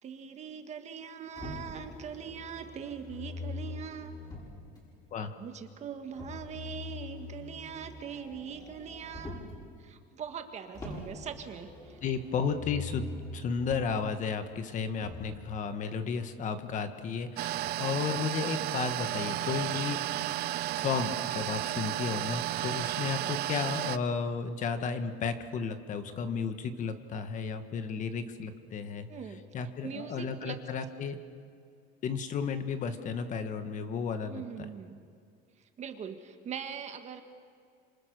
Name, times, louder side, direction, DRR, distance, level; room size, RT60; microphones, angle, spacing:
voice 1, 0.0-4.1 5.4-9.4 9.8-12.0 23.2-23.3 29.1-29.4 29.8-30.6 34.3-35.0 35.6-37.2, right 7 dB, 35° right, 7 dB, 1.7 m, -42 dB
Motor vehicle (road), 1.4-4.8 6.1-9.6 10.7-14.0 15.0-15.4, left 3 dB, 20° left, 7.2 m, -43 dB
voice 2, 12.0-20.0 20.7-29.1 29.5-31.2 32.0-34.7, left 5 dB, 40° left, 9 dB, 1.6 m, -33 dB
sound 1, 17.4-24.0, right 14 dB, 50° right, 0.6 m, -33 dB
27.5 x 26.0 x 6.8 m, 2.3 s
cardioid pair, 160°, 20 cm